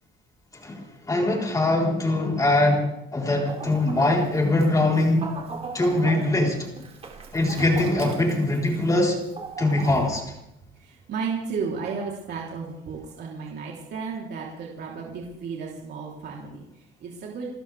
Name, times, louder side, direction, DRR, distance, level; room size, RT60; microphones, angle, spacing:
voice 1, 0.6-5.3 5.7-6.7 7.3-9.2 9.6-10.2, left 2 dB, 15° left, -1 dB, 4.3 m, -22 dB
Chicken rooster, 3.5-10.2, right 4 dB, 30° right, 3.2 m, -38 dB
voice 2, 10.8-17.6, right 5 dB, 55° right, -2 dB, 3.6 m, -33 dB
30.0 x 13.5 x 3.5 m, 0.86 s
cardioid pair, 150°, 20 cm